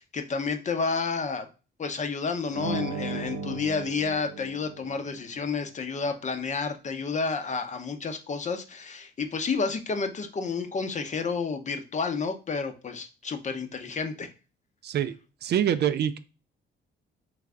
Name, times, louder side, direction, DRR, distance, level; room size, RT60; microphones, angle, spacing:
voice 1, 0.0-1.5 1.8-14.3, left 4 dB, 35° left, 7 dB, 0.7 m, -30 dB
sound 1, 2.5-5.2, right 3 dB, 85° right, 0.7 m, -35 dB
voice 2, 14.8-15.1 15.4-16.2, right 10 dB, 55° right, 12 dB, 0.4 m, -25 dB
3.4 x 3.2 x 3.6 m, 0.33 s
cardioid pair, 90°, 20 cm